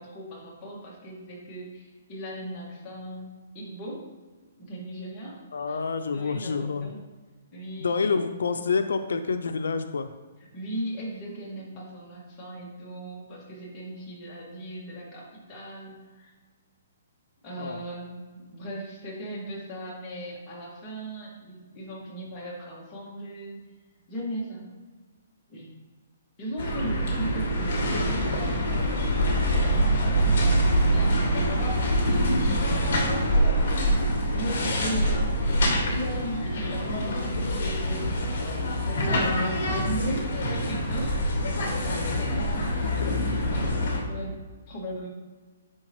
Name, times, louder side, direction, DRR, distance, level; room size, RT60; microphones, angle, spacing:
voice 1, 0.0-4.1 4.6-5.4 5.7-5.8 6.1-7.0 7.5-8.1 10.5-16.3 17.4-23.6 24.1-24.6 25.5-25.7 26.4-29.0 30.8-31.4 32.0-32.9 34.2-35.1 35.9-38.3 38.8-41.2 42.0-43.7 44.1-45.1, right 1 dB, 20° left, -5 dB, 1.8 m, -38 dB
voice 2, 5.5-6.9 7.8-10.1 17.6-17.8 31.3-31.5 32.6-32.9 34.3-34.5 34.8-34.9, left 5 dB, 90° left, 8 dB, 0.4 m, -28 dB
sound 1, 26.6-44.0, equal, 50° left, 1.8 m, -25 dB
10.5 x 3.9 x 3.0 m, 1.4 s
hypercardioid pair, 170°, 0 cm